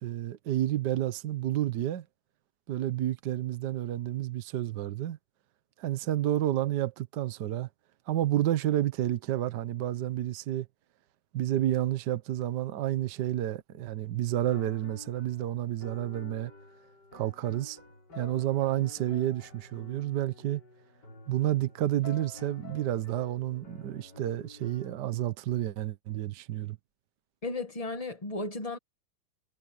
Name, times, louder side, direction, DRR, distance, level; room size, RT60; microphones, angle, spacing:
voice 1, 0.0-2.0 2.7-5.2 5.8-7.7 8.1-10.7 11.3-16.5 17.1-17.8 18.1-20.6 21.3-26.8, right 13 dB, 60° right, 1.4 m, -30 dB
sound 1, 14.5-24.9, left 4 dB, 55° left, 5.9 m, -50 dB
voice 2, 27.4-28.8, left 2 dB, 25° left, 0.9 m, -34 dB
omnidirectional pair, 2.3 m